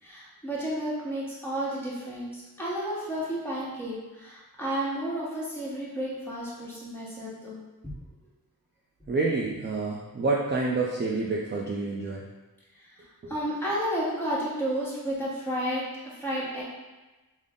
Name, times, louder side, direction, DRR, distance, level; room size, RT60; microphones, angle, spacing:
voice 1, 0.0-7.6 12.9-13.0 13.3-16.6, right 1 dB, 5° left, -7 dB, 1.0 m, -32 dB
voice 2, 9.1-12.2 13.2-13.3, right 3 dB, 30° right, -4 dB, 0.4 m, -28 dB
3.8 x 2.0 x 3.5 m, 1.1 s
wide cardioid pair, 95°, 36 cm